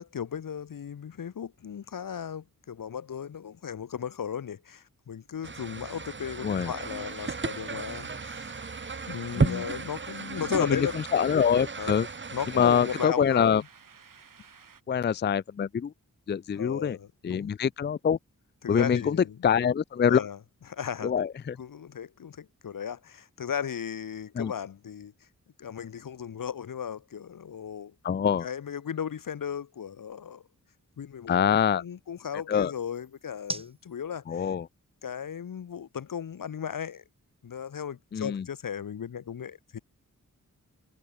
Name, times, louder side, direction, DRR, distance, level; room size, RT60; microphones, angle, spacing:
voice 1, 0.0-8.5 9.1-11.0 11.8-12.0 12.3-13.7 16.5-17.5 18.6-19.4 20.0-20.4 20.7-21.1 21.6-25.1 25.6-27.9 28.4-30.4 31.0-34.5 35.0-37.0 37.4-39.8, left 8 dB, 85° left, 1.3 m, -36 dB
sound 1, 5.4-13.0, right 4 dB, 35° right, 1.4 m, -34 dB
sound 2, 6.8-14.8, right 6 dB, 80° right, 7.4 m, -52 dB
voice 2, 11.1-12.1 12.6-13.6 14.9-15.9 16.3-17.0 17.2-18.2 18.7-19.2 19.4-20.2 21.0-21.6 24.4-24.5 28.0-28.5 31.3-31.8 32.5-32.7 34.3-34.7 38.1-38.4, left 7 dB, 35° left, 0.4 m, -25 dB
sound 3, 23.7-37.9, right 2 dB, 15° right, 2.0 m, -50 dB
wide cardioid pair, 120°, 32 cm